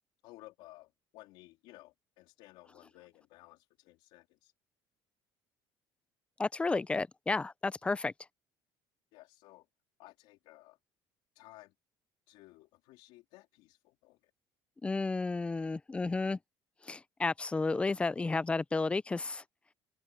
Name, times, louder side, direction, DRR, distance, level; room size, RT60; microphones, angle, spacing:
voice 1, 0.2-4.5 9.1-9.7 10.0-10.8 11.4-11.7 12.3-14.3, left 18 dB, 90° left, 3.7 m, -56 dB
voice 2, 6.4-8.1 14.8-16.4 16.8-19.4, left 3 dB, 15° left, 0.5 m, -32 dB
cardioid pair, 130°, 8 cm